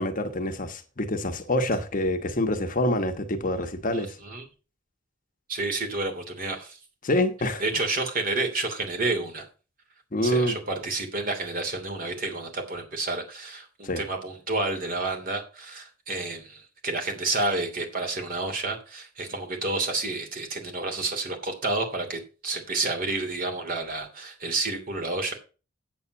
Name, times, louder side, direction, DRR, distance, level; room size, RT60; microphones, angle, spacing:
voice 1, 0.0-4.2 7.0-7.9 10.1-10.5 13.8-14.0, left 1 dB, 45° left, 1.2 m, -26 dB
voice 2, 3.9-4.4 5.5-6.8 7.6-9.5 10.2-25.3, right 2 dB, 45° right, 2.9 m, -30 dB
8.4 x 8.1 x 5.7 m
head